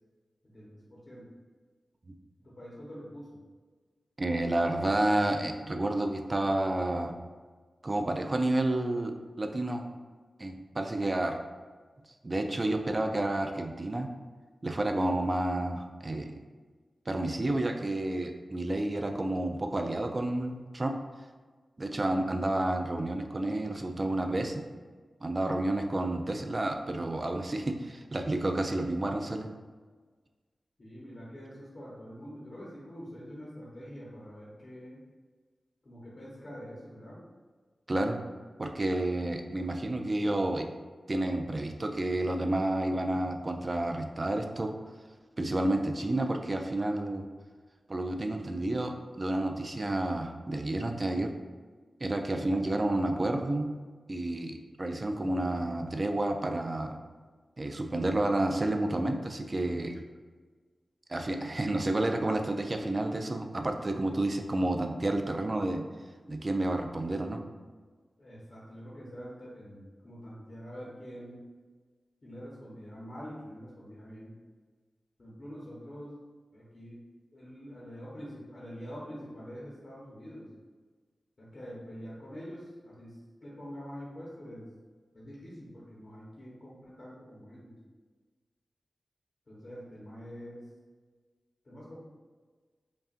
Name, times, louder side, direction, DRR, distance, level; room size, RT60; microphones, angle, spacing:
voice 1, 0.4-1.3 2.4-3.4 30.8-35.0 35.8-37.2 68.2-71.5 72.2-74.4 75.2-76.1 76.5-77.1 77.3-80.5 81.4-84.7 85.1-87.8 89.5-90.7 91.6-92.0, equal, 45° left, -7 dB, 0.9 m, -45 dB
voice 2, 4.2-7.1 7.8-9.8 10.4-11.4 12.2-14.1 14.6-16.3 17.1-20.9 21.8-24.7 25.2-29.5 37.9-38.2 38.6-40.7 41.1-44.7 45.4-47.2 47.9-51.3 52.0-53.7 54.1-57.0 57.6-60.0 61.1-65.8 66.3-67.4, right 1 dB, 35° right, 4 dB, 0.3 m, -30 dB
5.3 x 2.5 x 2.5 m, 1.4 s
wide cardioid pair, 105°, 0 cm